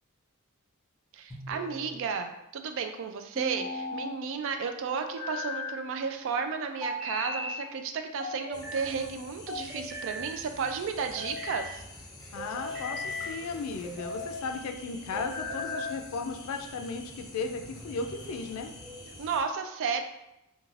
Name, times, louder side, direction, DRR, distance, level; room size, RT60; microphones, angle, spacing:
voice 1, 1.1-11.8 19.2-20.0, right 5 dB, 60° right, 7 dB, 0.3 m, -33 dB
sound 1, 1.3-2.0 3.3-4.1 5.0-5.8 6.8-7.6 8.2-8.9 9.5-10.3 11.0-11.6 12.4-13.3 13.8-14.4 15.1-16.0, left 2 dB, ahead, 0.8 m, -37 dB
sound 2, 8.5-19.4, left 1 dB, 20° left, 0.4 m, -47 dB
voice 2, 12.3-18.7, left 4 dB, 85° left, 6 dB, 0.3 m, -35 dB
2.4 x 2.2 x 3.1 m, 0.88 s
head